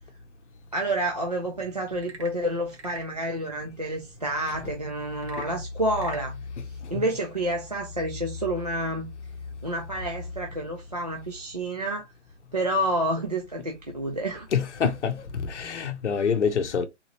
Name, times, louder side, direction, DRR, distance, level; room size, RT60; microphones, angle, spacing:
voice 1, 0.7-6.4 6.9-9.1 9.6-12.1 12.5-14.5, right 1 dB, 35° right, 0.5 m, -29 dB
Frog / Percussion / Wood, 2.0-3.2 5.2-6.3, right 4 dB, 65° right, 1.0 m, -44 dB
voice 2, 14.5-16.9, left 7 dB, 70° left, 0.7 m, -26 dB
3.8 x 2.9 x 2.9 m
hypercardioid pair, 175°, 36 cm